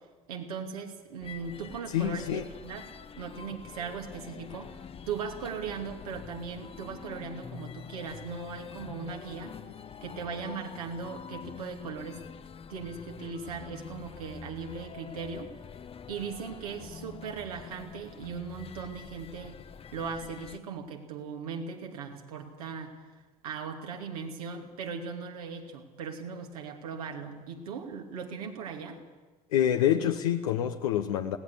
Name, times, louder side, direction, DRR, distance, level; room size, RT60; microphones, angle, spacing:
voice 1, 0.3-2.8 3.2-4.8 5.1-9.6 10.0-12.2 12.7-15.5 16.1-19.6 19.9-23.0 23.4-29.0, right 5 dB, 75° right, 2 dB, 2.7 m, -38 dB
sound 1, 1.2-20.6, left 7 dB, 30° left, 1.0 m, -46 dB
voice 2, 1.9-2.4 29.5-31.4, left 10 dB, 70° left, 4 dB, 1.1 m, -26 dB
21.5 x 17.5 x 8.2 m, 1.3 s
figure-of-eight pair, 60°, 19 cm